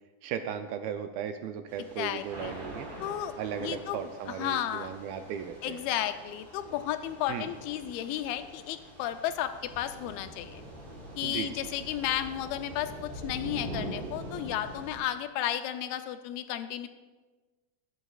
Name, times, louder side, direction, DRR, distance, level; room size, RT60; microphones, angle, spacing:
voice 1, 0.2-2.9 3.4-5.9 7.3-7.5 11.2-11.7, right 8 dB, 80° right, 7 dB, 2.3 m, -36 dB
Thunder / Rain, 1.7-15.0, right 1 dB, 50° right, 4.3 m, -44 dB
voice 2, 2.0-2.5 3.0-4.9 5.6-10.6 11.2-16.9, left 12 dB, 80° left, 9 dB, 2.3 m, -33 dB
22.0 x 8.0 x 2.4 m, 1.3 s
omnidirectional pair, 4.5 m